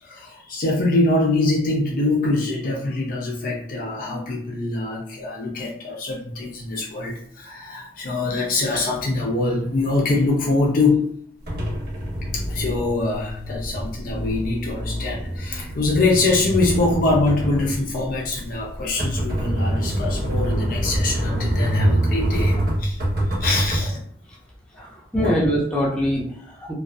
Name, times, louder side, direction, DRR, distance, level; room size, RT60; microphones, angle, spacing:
voice 1, 0.0-11.1 12.3-23.0 23.4-24.0 25.2-25.3, left 2 dB, 50° left, -2 dB, 0.4 m, -24 dB
sound 1, 11.5-23.8, right 1 dB, 55° right, 0.9 m, -25 dB
voice 2, 24.8-26.7, equal, 5° left, -6 dB, 0.6 m, -24 dB
2.5 x 2.2 x 2.4 m, 0.62 s
head